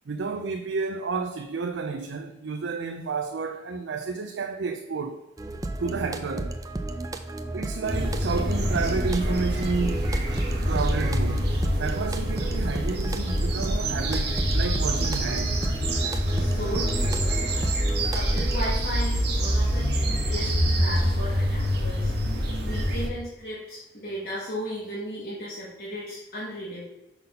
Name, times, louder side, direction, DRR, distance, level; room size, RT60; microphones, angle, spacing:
voice 1, 0.1-5.2 5.8-6.6 7.5-10.2 10.7-11.5 11.8-15.6, right 4 dB, 75° right, 0.5 m, -31 dB
sound 1, 5.4-18.8, right 2 dB, 20° right, 0.4 m, -34 dB
sound 2, 7.8-23.1, equal, 60° right, 1.2 m, -25 dB
voice 2, 16.3-17.4 18.1-22.1 22.6-26.8, equal, 55° left, 1.6 m, -35 dB
5.7 x 4.0 x 5.4 m
head